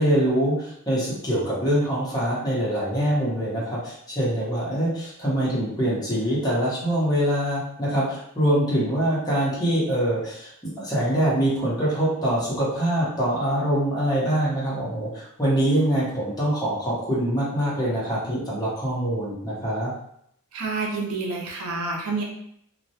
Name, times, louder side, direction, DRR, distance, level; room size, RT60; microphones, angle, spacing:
voice 1, 0.0-10.5 10.8-19.9, right 1 dB, 20° left, -7 dB, 0.9 m, -24 dB
voice 2, 20.5-22.2, right 3 dB, 85° right, -1 dB, 0.6 m, -28 dB
2.3 x 2.1 x 2.7 m, 0.71 s
head